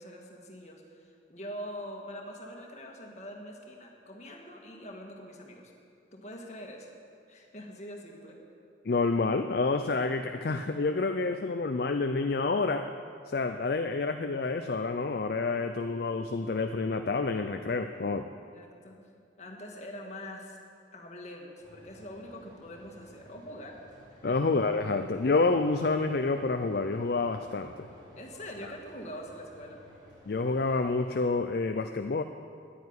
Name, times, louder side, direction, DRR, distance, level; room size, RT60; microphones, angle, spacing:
voice 1, 0.0-5.7 6.1-6.9 7.3-8.4 18.5-20.6 20.9-23.8 24.1-24.4 28.2-29.8, equal, 35° left, 1 dB, 1.7 m, -44 dB
voice 2, 8.8-12.9 13.3-18.3 24.2-27.7 30.3-32.2, left 3 dB, 55° left, 7 dB, 0.4 m, -28 dB
sound 1, 21.6-31.2, equal, 25° right, 4.0 m, -55 dB
10.5 x 9.3 x 9.6 m, 2.4 s
head